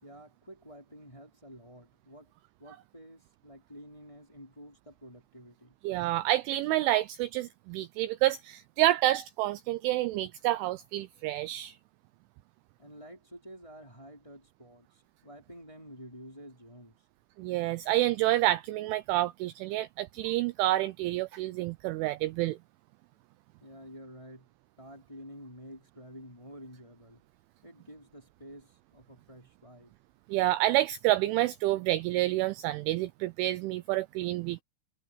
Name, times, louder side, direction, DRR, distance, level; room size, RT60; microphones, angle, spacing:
voice 1, 0.0-2.3 2.6-5.7 12.8-17.0 23.6-24.5 24.8-27.2 27.6-29.9, equal, 5° left, 3.5 m, -50 dB
voice 2, 5.8-11.8 17.4-22.6 30.3-34.6, right 16 dB, 80° right, 2.9 m, -28 dB
omnidirectional pair, 6.0 m